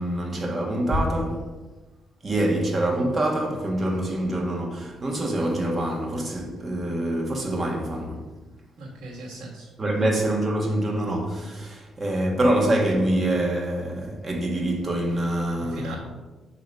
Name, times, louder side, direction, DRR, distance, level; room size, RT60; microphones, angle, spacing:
voice 1, 0.0-1.5 2.2-8.3 9.8-16.0, right 1 dB, 30° right, 1.4 m, -25 dB
voice 2, 8.8-9.7 15.6-16.0, right 2 dB, 80° right, 1.4 m, -38 dB
6.6 x 3.0 x 5.3 m
cardioid pair, 90°, 0 cm